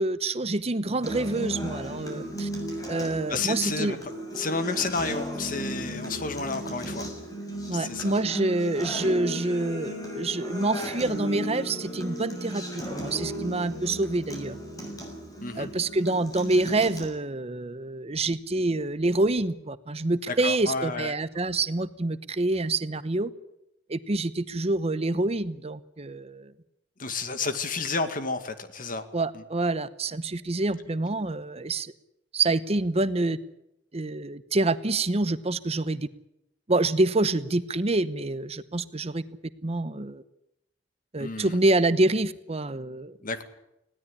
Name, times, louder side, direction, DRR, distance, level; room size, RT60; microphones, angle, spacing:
voice 1, 0.0-2.5 2.9-4.0 7.7-14.6 15.5-23.3 23.9-26.5 29.1-31.9 32.3-33.4 33.9-36.1 36.7-39.2 39.6-40.2 41.1-43.2, right 2 dB, 35° right, 14 dB, 0.9 m, -27 dB
Acoustic guitar, 1.0-17.0, equal, 20° left, 6.9 m, -35 dB
voice 2, 3.3-4.0 4.3-7.1 7.7-8.1 15.4-15.7 20.3-21.1 27.0-29.0 29.3-29.4 41.2-41.6 43.2-43.4, left 4 dB, 50° left, 9 dB, 2.1 m, -31 dB
20.0 x 17.0 x 9.8 m, 0.86 s
head